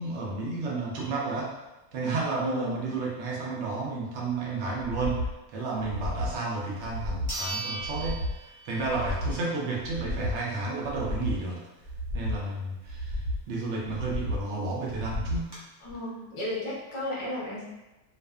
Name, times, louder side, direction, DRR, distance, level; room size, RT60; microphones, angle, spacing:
voice 1, 0.0-1.5 1.9-5.2 5.5-11.6 12.1-13.2 13.5-15.5, right 3 dB, 65° right, -3 dB, 0.7 m, -32 dB
voice 2, 2.4-2.8 15.8-17.6, left 1 dB, 45° left, -6 dB, 0.4 m, -33 dB
sound 1, 4.8-5.3 5.8-6.4 6.8-7.4 7.8-8.4 8.8-9.4 9.8-10.4 10.8-11.4 11.8-12.4 12.8-13.4 13.8-14.4 14.9-15.4 15.9-16.0, left 1 dB, 90° right, 1.2 m, -33 dB
sound 2, 6.4-6.5 7.3-9.0 9.4-9.5 14.1-14.2 14.4-14.5 15.1-15.6, right 2 dB, 40° right, 0.3 m, -37 dB
2.5 x 2.3 x 2.3 m, 1.0 s
omnidirectional pair, 1.6 m